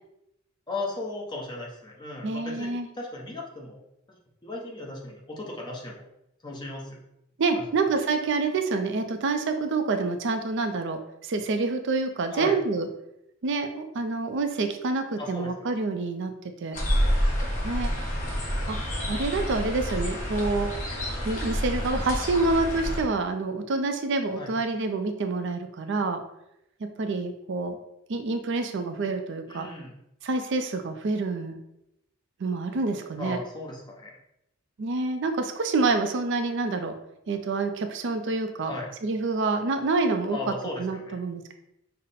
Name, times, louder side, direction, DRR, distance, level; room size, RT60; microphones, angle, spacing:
voice 1, 0.7-3.8 4.4-6.1 6.4-7.0 7.5-7.6 12.3-12.5 15.2-15.5 24.4-24.5 29.5-30.0 33.2-34.1 38.6-38.9 40.3-41.2, left 2 dB, 20° left, -2 dB, 0.8 m, -36 dB
voice 2, 2.2-2.9 7.4-12.9 13.4-16.3 16.6-16.8 17.6-17.9 18.7-18.8 19.1-20.7 21.2-26.2 27.0-27.8 28.1-29.7 30.2-31.6 32.4-33.4 34.8-36.9 37.3-38.7 39.0-41.5, right 3 dB, 60° right, 7 dB, 0.4 m, -27 dB
sound 1, 16.7-23.0, equal, 40° left, 1.0 m, -28 dB
5.4 x 2.0 x 4.1 m, 0.82 s
head